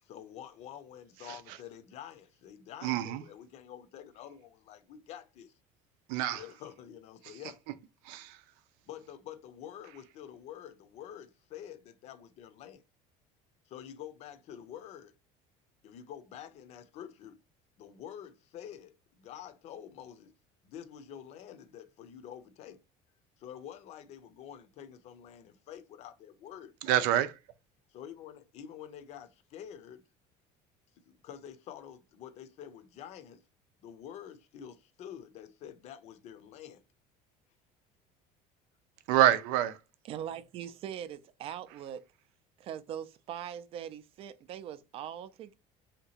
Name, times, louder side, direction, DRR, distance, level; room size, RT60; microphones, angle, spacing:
voice 1, 0.0-5.5 6.3-7.6 8.9-12.8 13.7-15.1 15.8-17.4 17.8-20.3 20.6-22.8 23.4-27.0 27.9-30.0 31.1-33.4 33.8-36.8, left 9 dB, 45° left, 0.6 m, -48 dB
voice 2, 1.2-1.6 2.8-3.2 6.1-6.4 7.2-7.4 8.0-8.4 26.8-27.3 39.1-39.8, right 12 dB, 90° right, 0.5 m, -27 dB
voice 3, 40.1-42.0 42.6-45.5, right 10 dB, 40° right, 0.4 m, -41 dB
3.4 x 2.9 x 2.8 m
cardioid pair, 160°, 15 cm